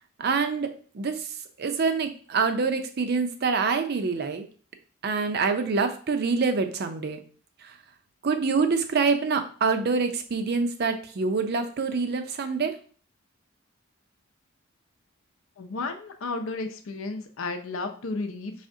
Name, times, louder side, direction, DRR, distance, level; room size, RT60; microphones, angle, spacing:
voice 1, 0.2-0.7 0.9-1.3 1.6-4.5 5.0-7.2 7.6-7.7 8.2-12.8, right 4 dB, 55° right, 8 dB, 0.5 m, -26 dB
voice 2, 15.6-18.5, left 3 dB, 80° left, 7 dB, 0.6 m, -33 dB
4.9 x 3.3 x 2.7 m, 0.43 s
head